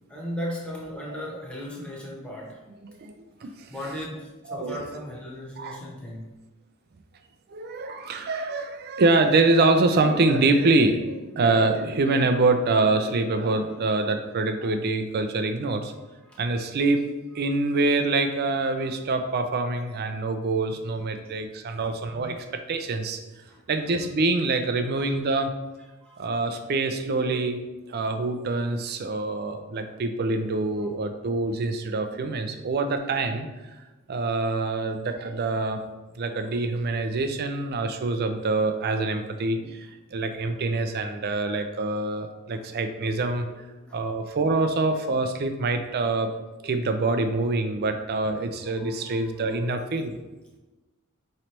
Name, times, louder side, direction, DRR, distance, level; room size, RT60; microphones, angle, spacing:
voice 1, 0.1-2.6 3.4-6.4 16.2-16.4 18.6-19.0 21.2-21.3 21.8-22.3 23.5-24.0 24.9-25.2 26.0-26.4 39.5-39.7 42.5-42.7 43.9-44.0 48.7-49.4, equal, 5° left, -4 dB, 0.9 m, -38 dB
voice 2, 2.8-3.2 3.4-3.7 4.5-4.9 5.6-5.8 7.5-15.9 16.4-17.0 17.3-23.2 23.7-25.5 26.2-27.6 27.8-33.5 34.1-35.8 36.2-43.5 43.9-46.3 46.6-50.1, right 3 dB, 45° right, 7 dB, 0.4 m, -25 dB
5.2 x 3.2 x 2.9 m, 1.1 s
head